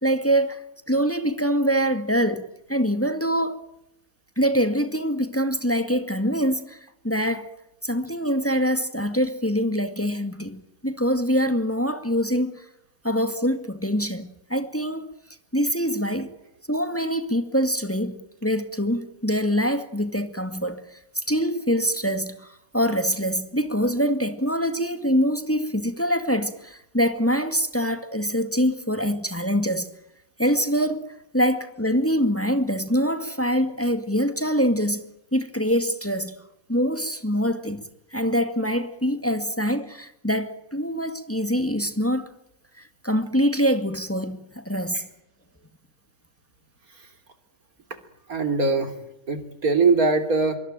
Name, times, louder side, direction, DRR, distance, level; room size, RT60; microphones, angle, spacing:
voice 1, 0.0-0.6 0.9-3.6 4.4-6.8 7.0-7.5 7.8-12.7 13.0-15.1 15.5-16.3 16.7-29.9 30.4-31.1 31.3-35.0 35.3-36.4 36.7-37.8 38.1-42.3 42.8-45.1, equal, 10° left, 2.1 m, -24 dB
voice 2, 48.3-48.9 49.3-50.6, right 4 dB, 80° right, 3.7 m, -21 dB
25.5 x 24.0 x 9.0 m
omnidirectional pair, 1.5 m